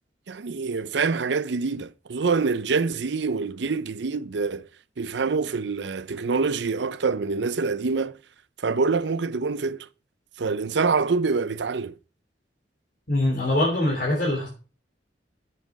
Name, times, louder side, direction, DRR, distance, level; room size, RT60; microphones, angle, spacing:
voice 1, 0.3-4.6 5.0-8.2 8.6-9.9 10.4-11.9, right 4 dB, 70° right, 0.6 m, -25 dB
voice 2, 13.1-14.5, left 1 dB, 50° left, 3.3 m, -23 dB
7.8 x 7.4 x 6.2 m
head